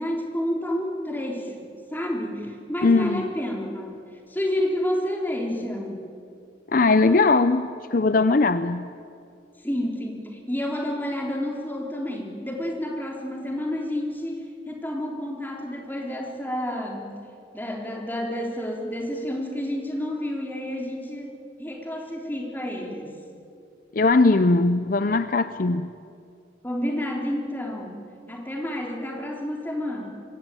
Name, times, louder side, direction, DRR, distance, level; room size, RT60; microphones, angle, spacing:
voice 1, 0.0-3.9 4.3-6.0 9.6-17.1 17.5-23.1 26.6-28.0 28.3-30.1, left 1 dB, 10° left, 0 dB, 3.4 m, -30 dB
voice 2, 2.8-3.2 6.7-8.9 23.9-25.9, left 3 dB, 45° left, 12 dB, 0.6 m, -20 dB
25.5 x 21.5 x 9.0 m, 2.5 s
head